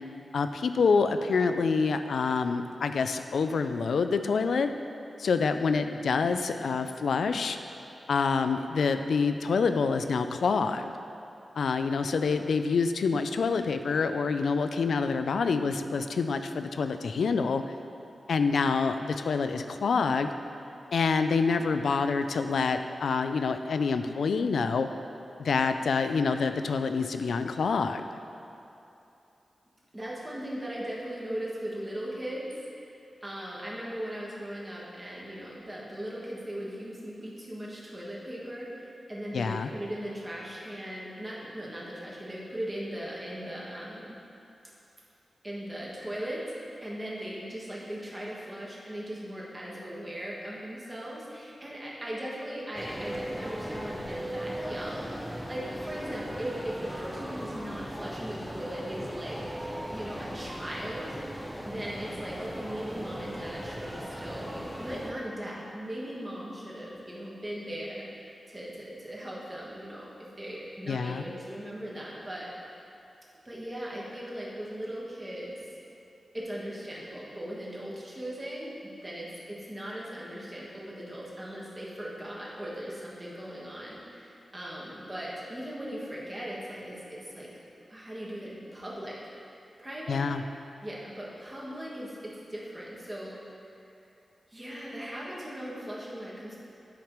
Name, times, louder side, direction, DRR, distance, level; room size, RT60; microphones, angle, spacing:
voice 1, 0.3-4.7 5.2-7.6 8.1-10.9 11.6-17.6 18.3-20.3 20.9-24.9 25.4-28.0 39.3-39.7 70.9-71.2 90.1-90.4, left 5 dB, 90° left, 8 dB, 0.3 m, -27 dB
voice 2, 29.9-32.5 32.8-44.1 45.4-46.4 46.8-59.4 59.9-61.2 61.6-68.1 68.5-72.5 73.4-75.6 76.3-87.5 87.9-89.3 89.8-90.2 90.8-93.4 94.5-96.6, equal, 20° right, -6 dB, 1.4 m, -38 dB
sound 1, 52.7-65.1, equal, ahead, 0.6 m, -38 dB
10.5 x 5.1 x 3.1 m, 2.8 s
wide cardioid pair, 130°, 0 cm